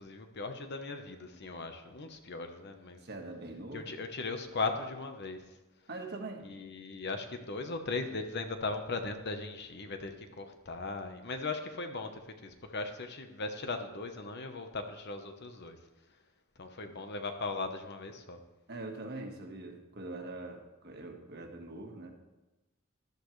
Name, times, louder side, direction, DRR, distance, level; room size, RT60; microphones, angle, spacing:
voice 1, 0.0-3.0 3.7-5.4 6.4-15.8 16.6-18.4, left 3 dB, 50° left, 6 dB, 1.0 m, -38 dB
voice 2, 3.0-3.9 5.9-6.4 18.7-22.1, right 2 dB, 50° right, 3 dB, 1.6 m, -43 dB
13.5 x 12.0 x 3.2 m, 1.1 s
head